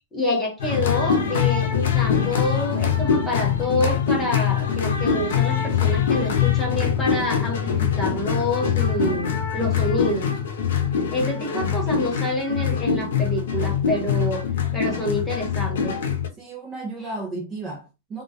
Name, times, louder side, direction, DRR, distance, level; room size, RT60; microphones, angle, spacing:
voice 1, 0.1-9.2 9.5-10.3 11.1-14.4 14.7-15.9, left 1 dB, 10° left, 0.7 m, -27 dB
sound 1, 0.6-16.3, left 7 dB, 80° left, 0.6 m, -23 dB
voice 2, 16.4-18.2, right 3 dB, 20° right, 0.4 m, -34 dB
2.2 x 2.2 x 2.6 m
supercardioid pair, 160°, 0 cm